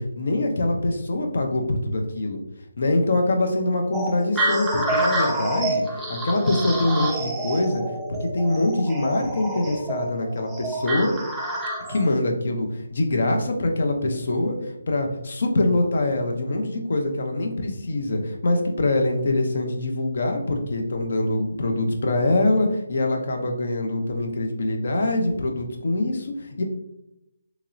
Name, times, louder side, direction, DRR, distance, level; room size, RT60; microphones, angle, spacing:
voice 1, 0.0-2.4 2.8-5.8 6.1-7.8 8.2-11.1 11.9-26.6, left 2 dB, 55° left, 3 dB, 0.6 m, -24 dB
sound 1, 3.9-12.1, right 1 dB, 5° right, 0.4 m, -28 dB
2.9 x 2.9 x 2.5 m, 0.86 s
figure-of-eight pair, 150°, 0 cm